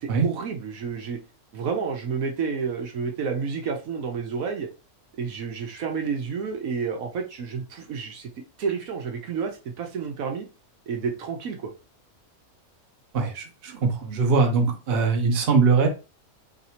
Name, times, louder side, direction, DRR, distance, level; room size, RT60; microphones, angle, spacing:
voice 1, 0.0-1.2 1.5-4.7 5.2-8.3 8.6-10.5 10.9-11.7, right 5 dB, 75° right, 3 dB, 1.2 m, -30 dB
voice 2, 13.1-15.9, right 4 dB, 50° right, 3 dB, 1.0 m, -21 dB
3.3 x 2.7 x 4.2 m, 0.30 s
omnidirectional pair, 1.5 m